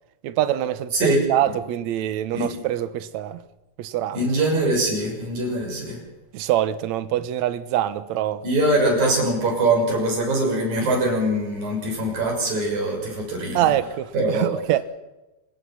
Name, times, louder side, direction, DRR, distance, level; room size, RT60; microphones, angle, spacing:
voice 1, 0.2-3.4 3.8-4.3 6.3-8.4 13.5-14.8, right 12 dB, 70° right, 1.7 m, -24 dB
voice 2, 4.1-6.0 8.4-13.7 14.1-14.5, right 1 dB, 50° right, 7.8 m, -22 dB
26.0 x 20.5 x 5.8 m
omnidirectional pair, 4.5 m